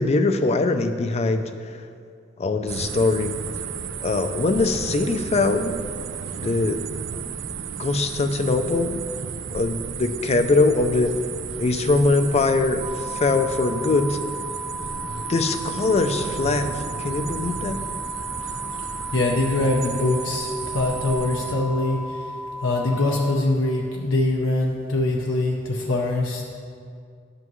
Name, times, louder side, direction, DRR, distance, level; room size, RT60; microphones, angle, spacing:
voice 1, 0.0-1.8 2.4-3.3 4.0-5.8 6.3-6.8 7.8-9.0 9.5-11.2 11.6-14.2 15.3-17.8, left 3 dB, 35° left, 8 dB, 0.4 m, -22 dB
sound 1, 2.7-21.5, right 6 dB, 65° right, 0.4 m, -33 dB
sound 2, 12.8-23.4, left 1 dB, 25° right, 0.6 m, -35 dB
voice 2, 19.1-22.3 22.6-26.5, left 2 dB, 75° left, -1 dB, 0.7 m, -23 dB
10.5 x 7.7 x 3.1 m, 2.3 s
head